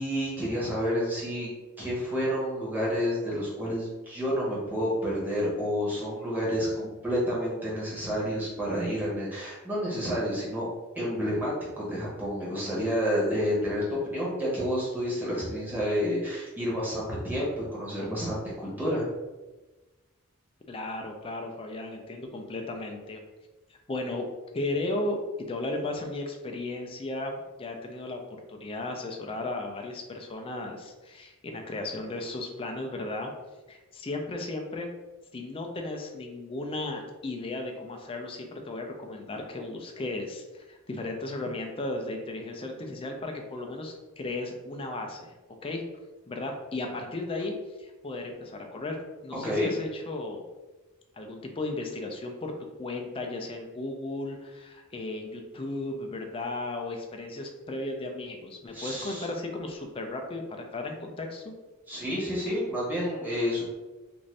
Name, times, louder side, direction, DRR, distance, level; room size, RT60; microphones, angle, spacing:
voice 1, 0.0-1.5 1.8-10.7 10.9-19.1 49.4-49.7 58.7-59.2 61.9-63.7, equal, 10° right, -7 dB, 1.0 m, -29 dB
voice 2, 20.7-23.2 23.9-24.3 24.5-25.2 25.5-28.2 28.5-33.3 33.7-34.9 35.3-45.3 45.6-45.8 46.3-47.5 47.8-50.4 51.2-52.5 52.8-61.5, left 2 dB, 25° left, 3 dB, 0.4 m, -35 dB
2.5 x 2.5 x 3.2 m, 1.1 s
head